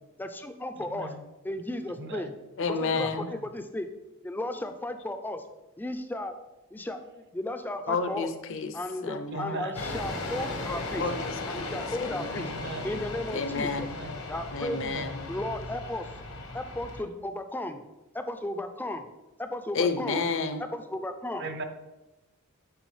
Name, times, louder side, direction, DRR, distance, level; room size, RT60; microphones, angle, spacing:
voice 1, 0.2-1.1 1.4-2.3 2.7-3.9 4.2-5.4 5.8-6.3 6.7-7.0 7.3-8.3 8.7-11.0 11.5-12.5 12.8-13.9 14.3-15.0 15.3-16.1 16.5-17.8 18.1-19.1 19.4-20.2 20.7-21.5, left 1 dB, 10° left, 8 dB, 0.4 m, -34 dB
voice 2, 0.8-1.2 2.0-2.3 3.0-3.5 9.3-9.8 12.4-12.9 13.7-14.2 14.7-15.2 21.4-21.6, right 2 dB, 50° right, 8 dB, 0.6 m, -39 dB
voice 3, 2.6-3.3 7.9-8.7 9.0-9.6 11.0-12.5 13.3-13.9 14.5-15.2 19.7-20.6, left 4 dB, 60° left, 8 dB, 0.6 m, -31 dB
sound 1, 9.7-17.0, left 2 dB, 80° left, 1.1 m, -36 dB
9.3 x 3.7 x 3.2 m, 1.0 s
head